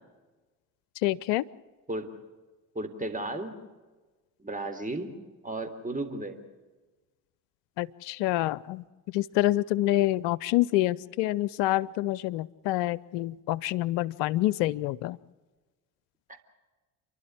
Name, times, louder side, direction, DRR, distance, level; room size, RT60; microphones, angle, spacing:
voice 1, 1.0-1.4 7.8-8.8 9.1-15.2, left 15 dB, 65° left, 21 dB, 0.7 m, -27 dB
voice 2, 2.7-3.6 4.4-5.1 5.4-6.4 16.3-16.4, right 2 dB, 15° right, 7 dB, 3.4 m, -34 dB
29.5 x 11.5 x 9.9 m, 1.2 s
hypercardioid pair, 55°, 48 cm